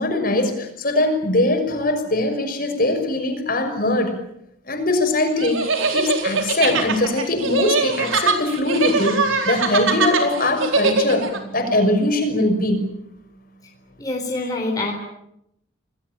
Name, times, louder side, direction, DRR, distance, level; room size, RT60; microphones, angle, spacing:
voice 1, 0.0-4.1 4.7-5.6 5.9-12.8, left 1 dB, 45° left, 5 dB, 6.0 m, -21 dB
sound 1, 5.4-11.4, right 4 dB, 80° right, 4.4 m, -22 dB
voice 2, 14.0-14.9, left 2 dB, 20° left, 0 dB, 4.2 m, -25 dB
28.5 x 20.0 x 9.0 m, 0.80 s
head